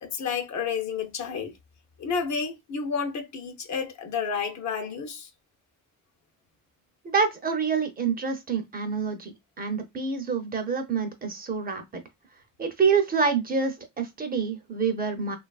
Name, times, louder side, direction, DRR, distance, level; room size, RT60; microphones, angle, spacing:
voice 1, 0.0-1.5 2.0-5.3, left 6 dB, 50° left, 0.6 m, -30 dB
voice 2, 7.0-11.8 12.6-15.4, right 5 dB, 25° right, 0.6 m, -27 dB
2.9 x 2.4 x 2.3 m
cardioid pair, 130°, 36 cm